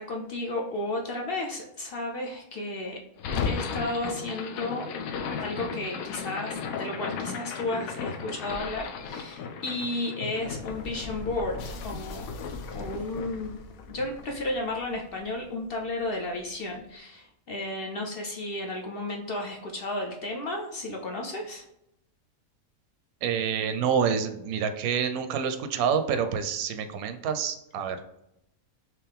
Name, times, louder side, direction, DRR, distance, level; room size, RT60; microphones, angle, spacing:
voice 1, 0.0-3.0 3.4-4.9 5.4-12.3 12.7-13.5 13.9-21.7, left 2 dB, 55° left, 1 dB, 0.7 m, -33 dB
sound 1, 3.2-15.4, left 5 dB, 80° left, 1.0 m, -35 dB
voice 2, 23.2-28.0, right 7 dB, 90° right, 8 dB, 1.1 m, -27 dB
4.7 x 3.0 x 3.4 m, 0.83 s
omnidirectional pair, 1.5 m